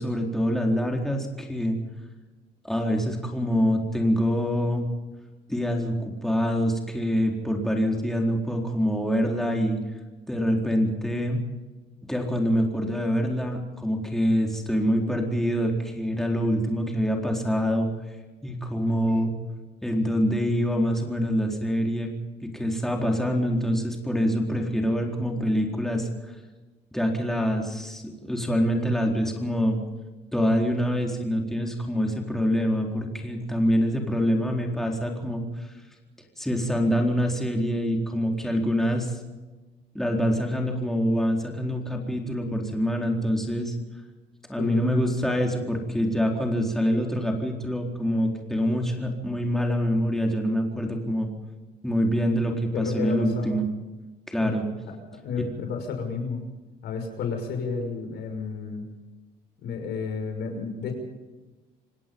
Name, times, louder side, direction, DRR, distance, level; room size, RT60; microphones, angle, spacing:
voice 1, 0.0-1.8 2.6-4.8 5.5-9.8 10.3-11.4 12.0-17.9 18.4-19.3 19.8-22.1 22.4-26.3 26.9-29.8 30.3-35.7 36.4-39.2 39.9-43.7 44.5-51.3 51.8-53.7 54.3-54.7 55.4-55.5, equal, ahead, 1 dB, 4.2 m, -25 dB
voice 2, 52.7-53.6 54.4-54.5 55.2-56.4 56.8-58.8 59.6-60.9, left 5 dB, 75° left, 5 dB, 5.9 m, -31 dB
27.5 x 17.5 x 5.6 m, 1.2 s
cardioid pair, 110°, 17 cm